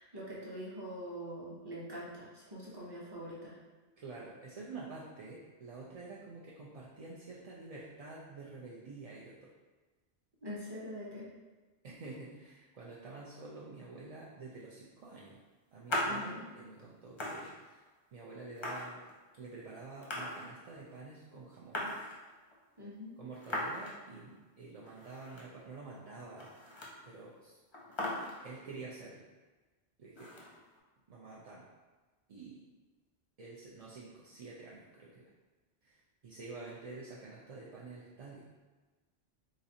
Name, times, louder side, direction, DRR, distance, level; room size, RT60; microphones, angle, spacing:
voice 1, 0.0-3.5 10.4-11.3 16.0-16.4 22.8-23.1, equal, 25° right, -6 dB, 0.8 m, -44 dB
voice 2, 4.0-9.5 11.8-15.4 15.7-17.8 18.1-19.0 19.4-21.9 23.2-26.5 27.0-27.6 28.4-29.2 30.0-30.3 31.1-31.6 32.3-32.6 33.4-35.3 35.8-38.5, right 3 dB, 55° right, -5 dB, 0.4 m, -48 dB
sound 1, 15.9-16.2 16.8-16.9 17.1-17.9 18.6-19.5 20.0-20.8 21.0-21.1 21.3-22.6 23.3-24.1 24.4-24.5 24.8-25.7 25.9-26.0 26.3-27.1 27.4-27.5 27.7-28.6 30.2-30.8, left 1 dB, 35° left, 0.5 m, -39 dB
4.0 x 2.5 x 2.7 m, 1.3 s
omnidirectional pair, 1.1 m